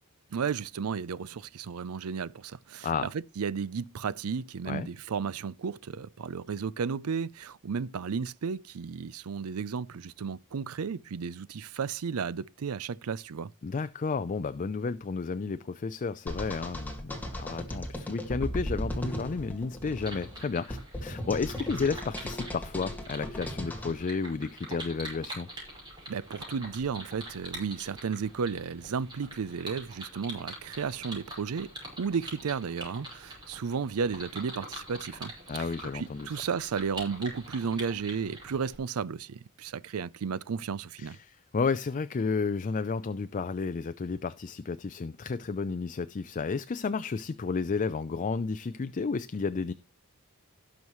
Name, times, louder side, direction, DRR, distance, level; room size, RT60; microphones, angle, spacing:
voice 1, 0.3-13.5 26.1-31.7 32.0-35.3 35.6-35.7 35.9-41.2, right 6 dB, 75° right, 0.5 m, -33 dB
voice 2, 13.6-25.5 35.5-36.4 41.0-49.7, left 4 dB, 35° left, 0.4 m, -32 dB
sound 1, 16.3-23.9, equal, 10° left, 1.9 m, -37 dB
sound 2, 20.0-38.8, right 1 dB, 20° right, 4.9 m, -45 dB
17.5 x 6.3 x 3.1 m
head